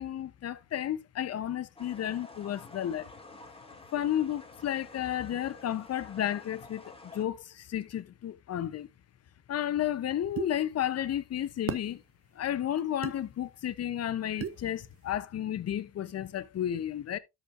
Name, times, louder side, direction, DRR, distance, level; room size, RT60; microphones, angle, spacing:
voice 1, 0.0-3.1 3.9-8.9 9.5-12.0 12.3-17.2, left 11 dB, 55° left, 0.9 m, -32 dB
sound 1, 1.8-7.2, left 2 dB, 20° left, 2.3 m, -50 dB
sound 2, 10.4-10.5 11.7-11.9 13.0-13.2 14.4-14.6, right 8 dB, 50° right, 0.9 m, -34 dB
12.5 x 5.3 x 2.6 m
cardioid pair, 90°, 30 cm